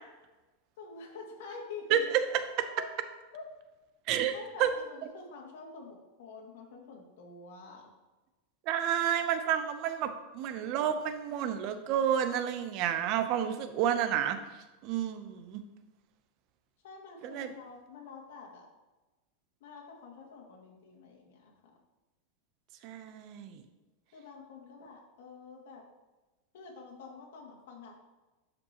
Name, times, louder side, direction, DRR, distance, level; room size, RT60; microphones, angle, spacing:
voice 1, 0.8-2.0 2.8-2.9 3.3-3.4 4.3-7.9 16.8-18.7 19.6-21.8 24.1-25.8 26.5-27.9, left 4 dB, 75° left, -1 dB, 2.2 m, -47 dB
voice 2, 1.9-2.2 4.1-4.3 4.6-4.7 8.7-14.4 14.8-15.6 17.2-17.5 22.8-23.6, right 9 dB, 45° right, 10 dB, 0.6 m, -30 dB
11.5 x 5.2 x 2.9 m, 1.1 s
supercardioid pair, 150°, 0 cm